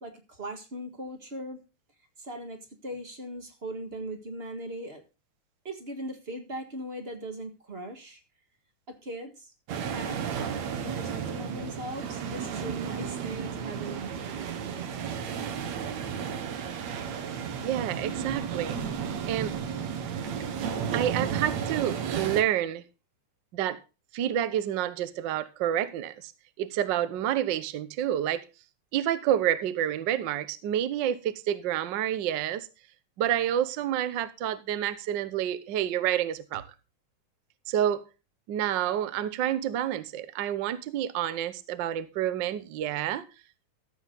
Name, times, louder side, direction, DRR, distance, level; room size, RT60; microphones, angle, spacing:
voice 1, 0.0-1.6 2.2-5.0 5.6-8.2 8.9-9.5 9.9-10.3 10.8-14.4, right 1 dB, 30° right, 1.3 m, -39 dB
sound 1, 9.7-22.4, right 7 dB, 70° right, 2.5 m, -33 dB
voice 2, 17.6-18.8 19.3-19.6 20.9-22.8 23.5-23.8 24.1-26.3 26.6-28.4 28.9-32.7 33.2-36.6 37.7-38.0 38.5-43.3, right 11 dB, 90° right, 1.0 m, -28 dB
14.5 x 7.8 x 3.9 m
omnidirectional pair, 3.3 m